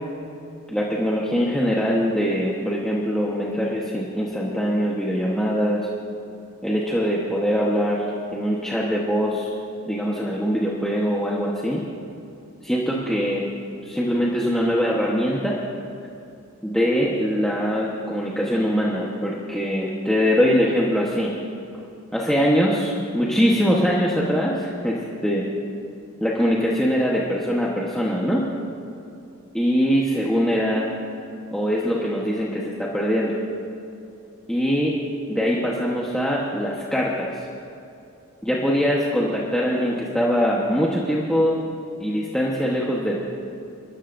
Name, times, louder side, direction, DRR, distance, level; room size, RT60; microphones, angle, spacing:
voice 1, 0.7-5.8 6.6-9.5 9.8-11.8 12.6-13.5 13.8-15.6 16.6-21.3 22.1-25.4 26.2-28.5 29.5-30.9 31.5-33.4 34.5-35.0 35.3-37.5 38.4-41.6 42.0-43.2, equal, 5° left, -5 dB, 1.1 m, -22 dB
29.0 x 13.0 x 2.6 m, 2.7 s
head